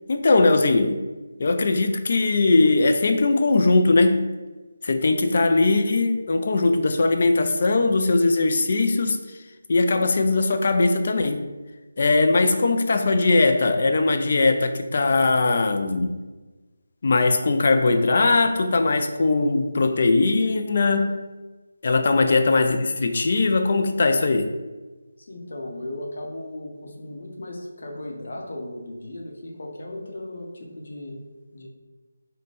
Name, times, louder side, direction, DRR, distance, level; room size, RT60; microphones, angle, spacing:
voice 1, 0.1-1.0 1.4-4.3 4.8-9.4 9.7-11.5 12.0-16.2 17.0-21.2 21.8-24.5, left 3 dB, 45° left, 6 dB, 0.3 m, -20 dB
voice 2, 25.2-31.2 31.5-31.7, left 1 dB, 60° left, 0 dB, 0.7 m, -36 dB
3.3 x 2.1 x 4.1 m, 1.2 s
figure-of-eight pair, 170°, 0 cm